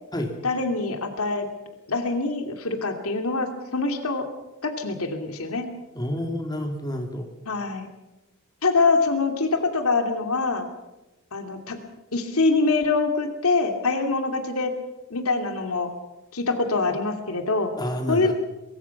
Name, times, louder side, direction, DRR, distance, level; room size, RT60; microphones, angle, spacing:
voice 1, 0.4-1.5 1.9-4.3 4.6-5.7 6.2-6.3 7.5-7.9 8.6-10.7 11.3-11.8 12.1-14.7 15.1-15.9 16.3-17.7 18.1-18.3, left 3 dB, 75° left, 6 dB, 2.7 m, -24 dB
voice 2, 5.9-7.3 17.8-18.3, equal, 20° left, 3 dB, 3.1 m, -29 dB
23.5 x 23.5 x 5.9 m, 1.0 s
head